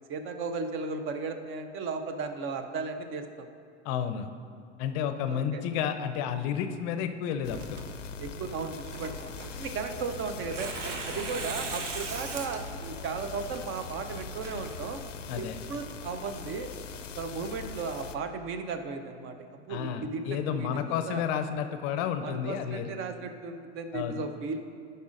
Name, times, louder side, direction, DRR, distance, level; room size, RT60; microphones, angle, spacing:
voice 1, 0.0-3.5 5.3-5.6 8.2-15.0 15.4-16.7 17.2-21.2 22.2-24.6, right 4 dB, 35° right, 7 dB, 0.8 m, -36 dB
voice 2, 3.8-4.3 4.8-7.8 15.3-15.6 19.7-22.9 23.9-24.2, left 8 dB, 40° left, 9 dB, 0.6 m, -31 dB
sound 1, 7.4-18.2, left 6 dB, 90° left, 0.5 m, -42 dB
Tearing, 7.5-15.3, right 3 dB, 80° right, 1.0 m, -41 dB
14.0 x 5.4 x 2.5 m, 2.4 s
hypercardioid pair, 90°, 36 cm